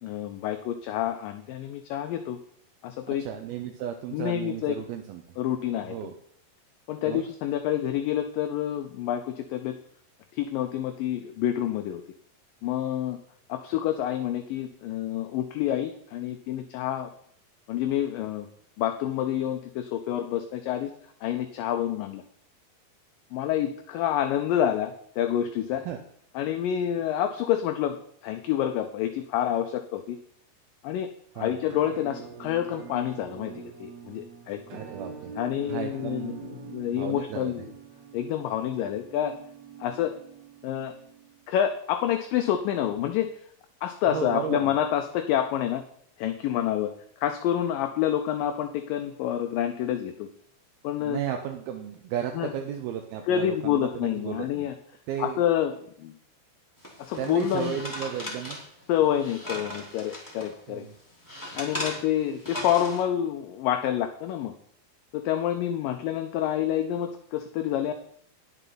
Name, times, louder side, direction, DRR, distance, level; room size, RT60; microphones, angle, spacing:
voice 1, 0.0-2.4 2.8-3.3 4.1-4.8 5.4-6.0 6.9-9.8 10.3-12.0 12.6-13.2 13.5-17.1 17.7-18.5 18.8-20.9 21.2-22.2 23.3-25.9 26.4-28.0 28.2-30.2 30.8-31.1 31.4-34.6 35.4-37.7 38.1-39.3 39.8-40.1 40.6-40.9 41.5-43.3 43.8-45.8 46.2-46.9 47.2-50.3 50.8-51.2 52.4-52.5 53.3-54.7 55.2-56.1 57.0-57.8 58.9-60.9 61.5-64.5 65.1-67.9, left 11 dB, 80° left, 6 dB, 2.1 m, -28 dB
voice 2, 3.2-5.2 5.8-6.1 7.1-7.2 25.9-26.0 31.4-31.6 34.7-35.3 35.7-36.5 36.8-37.7 44.1-44.7 51.0-54.7 55.1-55.4 57.2-58.6 60.7-60.9, right 9 dB, 80° right, 4 dB, 2.6 m, -34 dB
Musical instrument, 31.7-41.5, right 6 dB, 60° right, 2.0 m, -44 dB
sound 1, 56.8-60.5 60.9-63.0, left 1 dB, 5° left, 1.8 m, -38 dB
10.0 x 8.1 x 5.7 m, 0.63 s
omnidirectional pair, 4.5 m